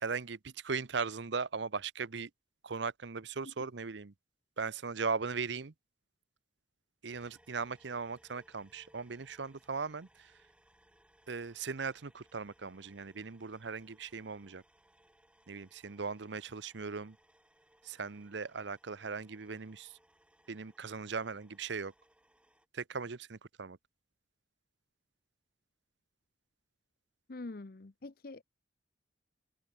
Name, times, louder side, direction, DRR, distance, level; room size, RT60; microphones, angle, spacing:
voice 1, 0.0-2.3 2.6-4.1 4.6-5.7 7.0-10.3 11.3-14.6 15.5-17.2 17.8-20.0 20.5-21.9 22.7-23.8, right 5 dB, 70° right, 0.8 m, -38 dB
sound 1, 7.1-22.7, right 1 dB, 5° right, 3.9 m, -67 dB
voice 2, 27.3-28.4, left 2 dB, 50° left, 0.7 m, -45 dB
head